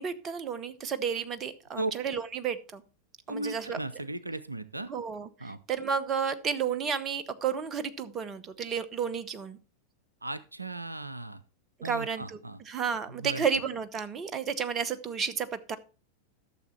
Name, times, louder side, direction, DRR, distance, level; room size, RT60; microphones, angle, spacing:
voice 1, 0.0-2.8 3.3-3.8 4.9-9.6 11.8-15.8, right 6 dB, 25° right, 13 dB, 0.9 m, -32 dB
voice 2, 3.3-4.9 5.4-5.6 10.2-11.4 11.8-12.6 13.2-13.4, right 2 dB, 85° right, 15 dB, 0.5 m, -36 dB
13.0 x 6.8 x 4.4 m, 0.34 s
figure-of-eight pair, 90°, 0 cm